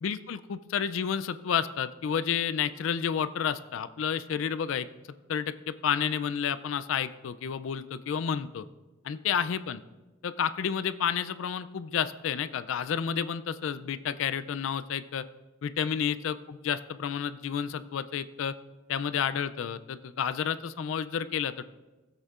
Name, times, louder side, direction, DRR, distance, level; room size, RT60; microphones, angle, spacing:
voice 1, 0.0-4.9 5.3-8.6 9.0-9.8 10.2-15.3 15.6-18.5 18.9-21.6, left 7 dB, 70° left, 13 dB, 0.4 m, -30 dB
16.0 x 8.0 x 2.4 m, 1.2 s
head